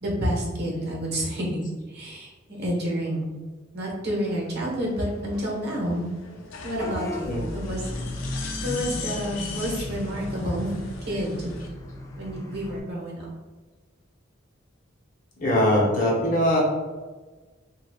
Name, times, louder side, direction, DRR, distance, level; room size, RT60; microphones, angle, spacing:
voice 1, 0.0-3.3 3.7-6.1 6.6-7.8 8.6-10.7 11.0-11.5 12.2-13.3, equal, 55° right, -2 dB, 1.0 m, -29 dB
sound 1, 4.0-11.7, left 5 dB, 90° left, 0.6 m, -40 dB
Vehicle horn car horn honking / Bus, 6.7-12.8, left 1 dB, 15° left, 0.4 m, -35 dB
voice 2, 15.4-16.6, left 1 dB, 40° left, -3 dB, 0.8 m, -21 dB
3.1 x 2.4 x 3.4 m, 1.3 s
head